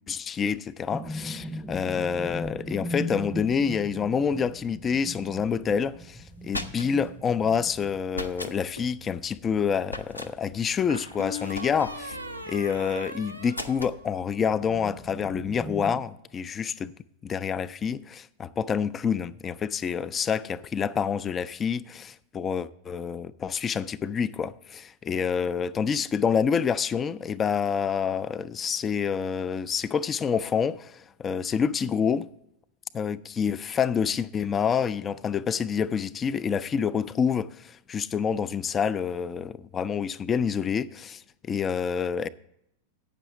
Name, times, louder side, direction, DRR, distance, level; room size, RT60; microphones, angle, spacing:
voice 1, 0.1-12.2 12.5-16.9 17.2-32.3 32.9-42.3, left 7 dB, 20° left, 0.3 m, -27 dB
sound 1, 0.9-8.4 8.8-9.0 9.4-11.0 14.1-16.0, equal, ahead, 0.8 m, -38 dB
sound 2, 6.2-7.1 8.1-8.6 9.9-10.3 11.5-12.1 13.5-14.0, left 1 dB, 85° left, 0.5 m, -37 dB
sound 3, 8.2-9.0 10.9-14.5, left 2 dB, 85° right, 0.6 m, -39 dB
8.3 x 6.2 x 7.9 m
figure-of-eight pair, 90°, 0 cm